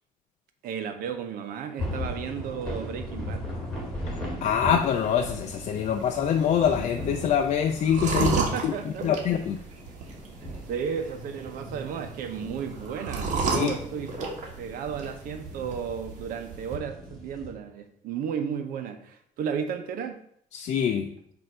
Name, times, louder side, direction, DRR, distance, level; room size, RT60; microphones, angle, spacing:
voice 1, 0.6-3.4 8.2-9.1 10.5-14.1 14.6-20.2, right 7 dB, 80° right, 7 dB, 0.8 m, -33 dB
sound 1, 1.8-17.5, left 1 dB, 5° left, 1.6 m, -39 dB
voice 2, 4.4-8.3 8.6-8.7 9.0-9.6 13.5-13.7 20.5-21.1, left 8 dB, 50° left, 4 dB, 0.4 m, -24 dB
sound 2, 4.7-16.8, right 4 dB, 55° right, 1.3 m, -34 dB
7.6 x 2.7 x 5.3 m, 0.68 s
cardioid pair, 165°, 14 cm